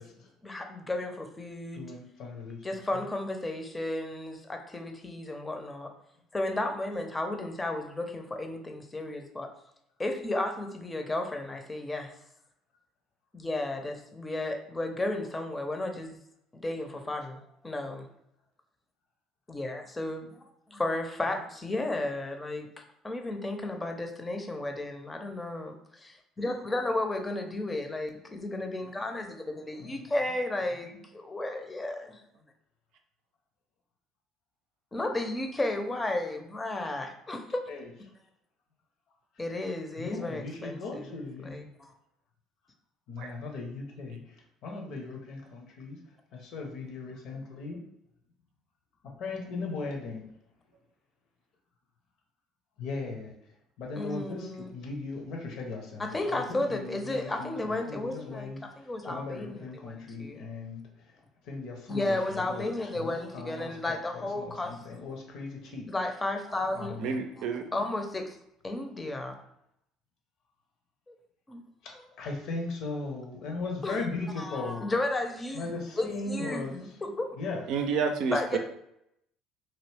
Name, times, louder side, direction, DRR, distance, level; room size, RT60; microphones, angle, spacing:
voice 1, 0.4-1.9 2.6-5.9 6.3-9.5 10.0-12.1 13.3-16.2 16.5-17.4 17.6-18.1 19.5-20.4 20.7-22.7 23.0-32.2 34.9-37.6 39.4-41.9 54.0-54.7 56.0-60.4 61.9-64.8 65.9-67.1 67.7-68.4 68.6-69.3 71.1-71.2 71.5-71.6 73.8-74.0 74.4-77.3 78.3-78.6, left 2 dB, 20° left, 4 dB, 0.6 m, -33 dB
voice 2, 1.7-2.8 29.8-30.0 30.9-31.0 37.7-37.9 40.0-41.6 43.1-44.2 44.6-46.0 46.3-47.8 49.2-50.2 52.8-53.3 53.8-58.6 59.0-60.8 61.5-62.7 62.9-65.9 66.7-67.1 71.8-74.8 75.5-76.7 77.4-77.6, left 3 dB, 60° left, 1 dB, 0.8 m, -38 dB
voice 3, 67.0-67.7 77.7-78.6, right 5 dB, 65° right, 6 dB, 0.5 m, -29 dB
3.0 x 2.6 x 3.3 m, 0.76 s
hypercardioid pair, 60°, 0 cm